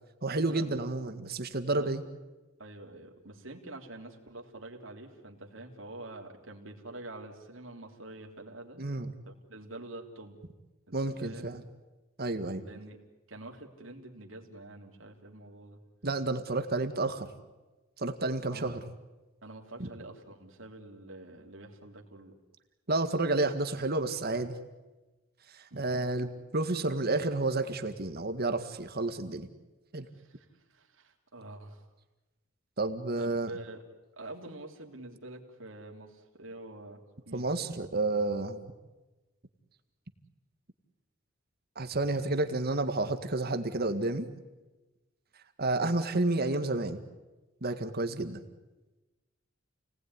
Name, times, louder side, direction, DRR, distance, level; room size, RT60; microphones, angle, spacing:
voice 1, 0.2-2.0 8.8-9.1 10.9-11.6 12.2-12.6 16.0-17.3 18.0-18.8 19.8-19.9 22.9-24.6 25.5-29.5 29.9-30.1 32.8-33.5 37.3-38.6 41.8-44.3 45.6-47.0 47.6-48.4, right 2 dB, 50° right, 8 dB, 1.9 m, -30 dB
voice 2, 2.6-8.8 9.3-10.4 10.9-11.5 12.6-13.0 13.3-15.8 18.5-18.7 19.4-22.3 25.7-26.1 30.1-31.8 33.2-33.8 34.2-37.5, right 2 dB, 70° right, 1 dB, 3.4 m, -46 dB
29.5 x 19.0 x 9.7 m, 1.1 s
head